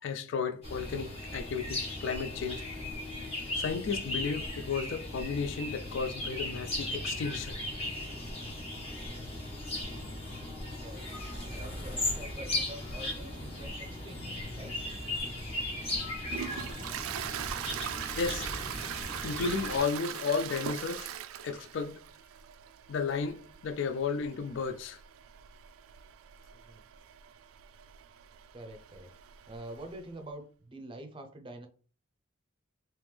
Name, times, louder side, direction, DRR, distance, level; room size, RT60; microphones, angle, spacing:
voice 1, 0.0-2.6 3.5-7.6 18.2-18.5 19.2-21.1 21.4-22.0 22.9-25.0, left 5 dB, 60° left, 0.3 m, -33 dB
sound 1, 0.6-19.8, left 1 dB, 25° left, 1.2 m, -37 dB
voice 2, 10.3-14.3 14.5-14.8 26.5-26.8 28.5-31.7, right 1 dB, 25° right, 0.6 m, -47 dB
Toilet flush, 15.3-30.0, right 9 dB, 75° right, 0.3 m, -42 dB
3.4 x 2.9 x 3.2 m
head